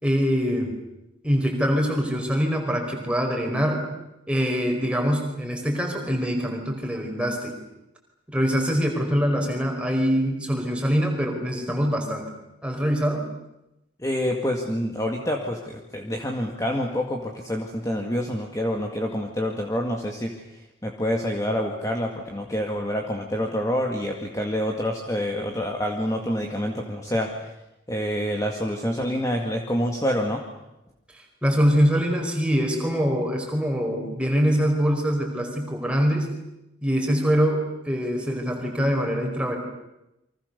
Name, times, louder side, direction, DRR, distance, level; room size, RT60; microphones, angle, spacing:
voice 1, 0.0-0.7 1.2-3.9 4.3-7.5 8.3-12.3 12.6-13.3 31.1-36.3 36.8-39.6, equal, 5° right, 1 dB, 4.7 m, -24 dB
voice 2, 14.0-20.4 20.8-27.5 27.9-30.4, equal, 15° left, 1 dB, 2.1 m, -27 dB
29.5 x 24.0 x 6.9 m, 0.91 s
head